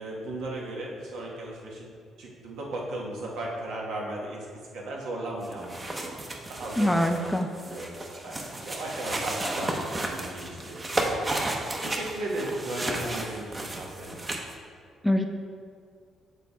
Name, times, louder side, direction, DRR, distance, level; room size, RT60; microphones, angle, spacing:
voice 1, 0.0-1.9 2.2-4.5 4.7-6.1 6.5-8.4 8.6-11.4 11.8-14.1, right 1 dB, 85° right, -3 dB, 1.2 m, -36 dB
sound 1, 5.4-14.5, right 2 dB, 25° right, 0.7 m, -33 dB
voice 2, 6.8-7.5 15.0-15.3, left 1 dB, 5° left, 4 dB, 0.4 m, -23 dB
6.7 x 3.5 x 4.1 m, 2.1 s
cardioid pair, 90°, 0 cm